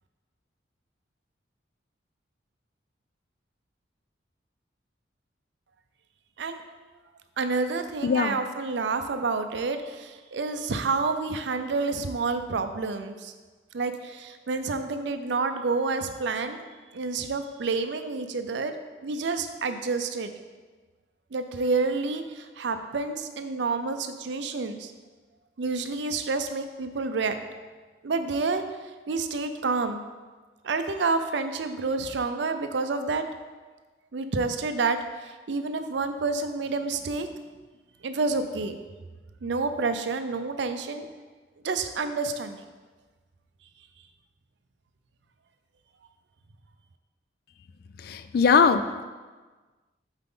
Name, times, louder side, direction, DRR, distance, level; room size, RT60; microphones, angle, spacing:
voice 1, 7.4-13.3 13.7-16.6 16.9-18.7 19.0-20.3 21.3-24.9 25.6-27.4 28.0-28.6 29.1-30.0 30.6-33.2 34.1-37.3 38.0-38.7 39.4-41.1 41.6-42.6, right 4 dB, 70° right, 8 dB, 0.5 m, -29 dB
voice 2, 8.0-8.4 48.0-49.0, left 5 dB, 55° left, 11 dB, 0.3 m, -21 dB
7.8 x 4.4 x 3.7 m, 1.3 s
head